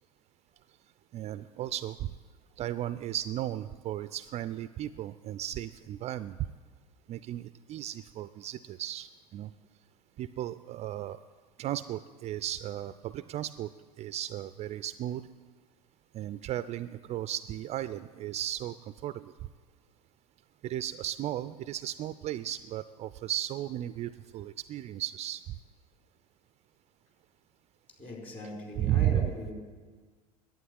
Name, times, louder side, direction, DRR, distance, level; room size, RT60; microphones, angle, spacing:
voice 1, 1.1-2.1 2.6-6.4 7.1-9.5 10.2-11.2 11.6-13.7 14.0-15.2 16.1-18.8 19.0-19.3 20.6-25.4 28.8-29.3, right 12 dB, 35° right, 14 dB, 0.4 m, -35 dB
voice 2, 28.0-29.5, left 1 dB, 30° left, -1 dB, 4.4 m, -40 dB
11.5 x 9.1 x 9.5 m, 1.5 s
hypercardioid pair, 85°, 20 cm